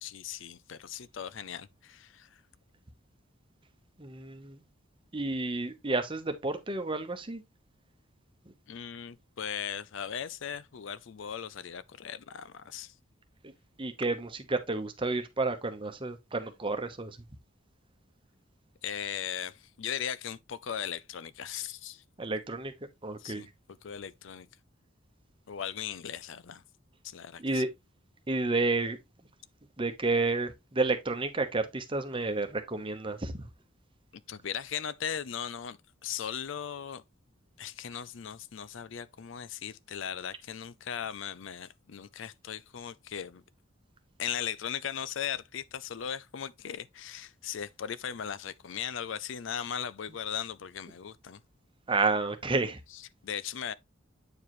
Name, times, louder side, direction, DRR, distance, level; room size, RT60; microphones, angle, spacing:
voice 1, 0.0-2.4 8.7-12.9 18.8-22.0 23.2-23.5 23.8-24.5 25.5-26.6 27.0-27.6 34.3-37.0 37.6-43.4 44.2-51.4 52.9-53.7, left 8 dB, 65° left, 0.5 m, -38 dB
voice 2, 4.0-4.6 5.1-7.4 8.5-8.6 13.4-13.5 13.8-17.2 22.2-22.7 23.0-23.4 27.4-27.7 28.3-29.0 29.8-33.5 51.9-52.8, right 3 dB, 25° right, 1.0 m, -30 dB
8.6 x 4.8 x 3.1 m
head